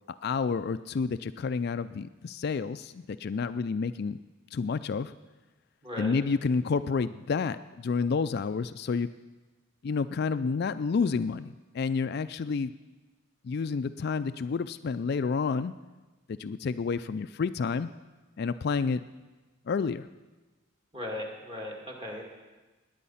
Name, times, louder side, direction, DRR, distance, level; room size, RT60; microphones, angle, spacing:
voice 1, 0.1-4.2 4.5-5.1 6.0-9.1 9.8-12.7 13.4-15.7 16.3-17.9 18.4-19.0 19.7-20.1, left 5 dB, 50° left, 12 dB, 0.3 m, -29 dB
voice 2, 5.8-6.2 20.9-22.2, left 1 dB, 25° right, 0 dB, 2.2 m, -37 dB
19.5 x 9.2 x 5.7 m, 1.2 s
head